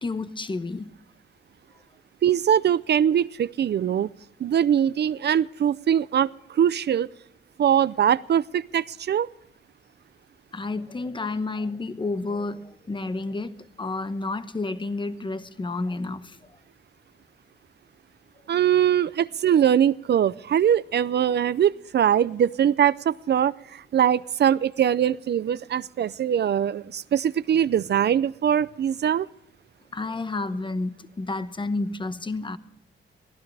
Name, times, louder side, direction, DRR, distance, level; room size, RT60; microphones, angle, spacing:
voice 1, 0.0-0.9 10.5-16.4 29.9-32.6, left 3 dB, 25° left, 12 dB, 1.0 m, -30 dB
voice 2, 2.2-4.1 4.4-7.1 7.6-9.3 18.5-29.3, right 9 dB, 55° right, 17 dB, 0.5 m, -22 dB
23.5 x 15.5 x 3.4 m, 0.83 s
cardioid pair, 115°, 21 cm